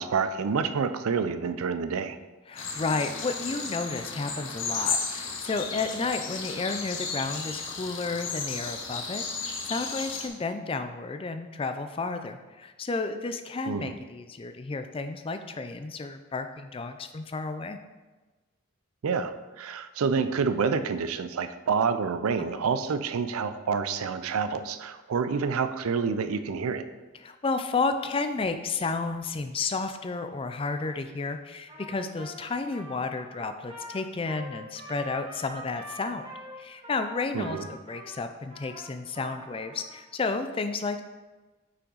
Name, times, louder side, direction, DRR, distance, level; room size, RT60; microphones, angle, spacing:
voice 1, 0.0-2.2 13.7-13.9 19.0-26.8 37.3-37.7, right 5 dB, 90° right, 11 dB, 0.4 m, -28 dB
voice 2, 2.5-17.8 27.2-36.2 36.6-41.0, left 3 dB, 25° left, 8 dB, 0.3 m, -32 dB
sound 1, 2.6-10.3, left 4 dB, 60° left, 1.0 m, -34 dB
Trumpet, 31.7-39.9, right 1 dB, 25° right, 1.1 m, -44 dB
6.1 x 5.8 x 3.9 m, 1.2 s
head